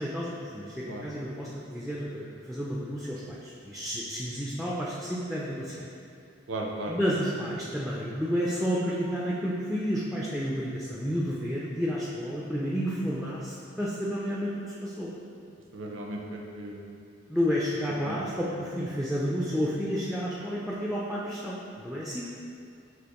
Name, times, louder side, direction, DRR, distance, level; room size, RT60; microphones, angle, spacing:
voice 1, 0.0-5.9 6.9-14.5 14.8-15.1 17.3-22.3, equal, ahead, -6 dB, 0.3 m, -31 dB
voice 2, 6.5-7.1 15.7-17.0 18.0-18.2, right 1 dB, 80° right, 0 dB, 0.6 m, -36 dB
6.1 x 2.9 x 2.9 m, 2.4 s
head